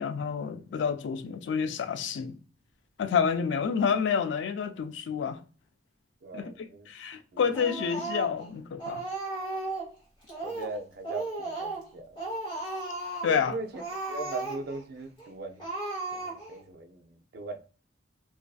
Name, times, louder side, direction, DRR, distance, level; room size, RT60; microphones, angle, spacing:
voice 1, 0.0-2.4 3.0-5.4 6.3-6.5 6.9-9.0 13.2-13.5, left 6 dB, 80° left, 0.3 m, -29 dB
voice 2, 6.2-6.9 7.3-7.4 10.4-12.2 13.2-13.8 14.1-15.7 16.1-17.6, right 3 dB, 60° right, 0.4 m, -39 dB
Speech, 7.5-8.5 8.8-9.9 10.3-10.8 11.0-11.9 12.2-13.4 13.7-14.8 15.2-15.3 15.6-16.6, right 2 dB, 25° left, 1.2 m, -35 dB
2.4 x 2.2 x 2.3 m
head